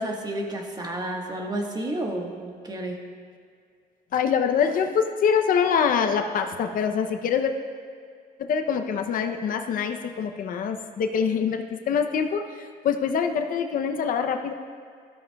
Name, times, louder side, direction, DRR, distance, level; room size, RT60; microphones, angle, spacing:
voice 1, 0.0-3.0, right 1 dB, 25° right, 1 dB, 1.4 m, -31 dB
voice 2, 4.1-7.5 8.4-14.5, left 7 dB, 55° left, 6 dB, 0.6 m, -25 dB
13.0 x 12.5 x 2.3 m, 2.1 s
cardioid pair, 110°, 17 cm